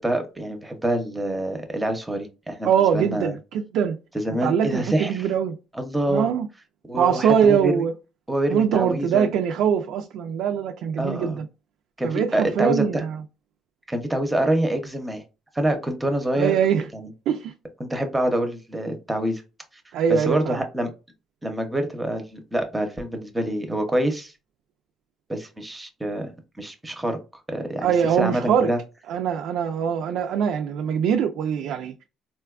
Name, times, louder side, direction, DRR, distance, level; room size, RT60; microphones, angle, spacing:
voice 1, 0.0-3.3 4.1-5.2 5.7-6.3 6.9-7.8 8.3-9.3 11.0-11.4 12.0-13.0 13.9-15.2 15.5-16.5 16.9-17.1 17.8-19.4 20.1-20.9 21.4-24.3 25.3-26.3 26.6-27.2 27.5-28.8, right 1 dB, 10° right, 0.6 m, -26 dB
voice 2, 2.6-4.0 4.4-5.6 6.1-6.5 7.0-7.9 8.5-11.5 12.0-13.2 16.4-16.9 17.3-17.5 19.9-20.6 27.8-28.7 29.1-31.9, right 8 dB, 75° right, 0.3 m, -22 dB
4.1 x 2.2 x 2.3 m
cardioid pair, 130°, 0 cm